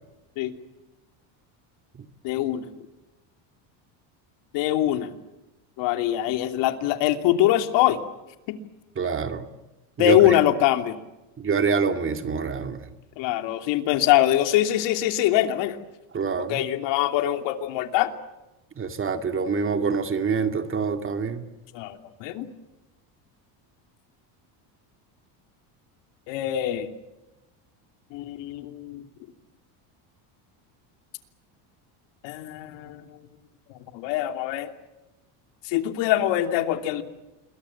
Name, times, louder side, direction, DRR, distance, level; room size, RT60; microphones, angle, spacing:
voice 1, 2.2-2.7 4.5-5.1 5.8-8.0 8.5-8.6 10.0-10.9 13.2-15.8 16.4-18.1 21.7-22.5 26.3-26.9 28.1-29.1 32.2-33.2 33.9-34.7 35.6-37.0, left 13 dB, 70° left, 7 dB, 3.0 m, -23 dB
voice 2, 9.0-9.4 10.0-10.2 11.4-12.9 16.1-16.6 18.8-21.5, right 5 dB, 25° right, 7 dB, 2.3 m, -26 dB
28.5 x 22.0 x 7.4 m, 1.0 s
cardioid pair, 135°, 45 cm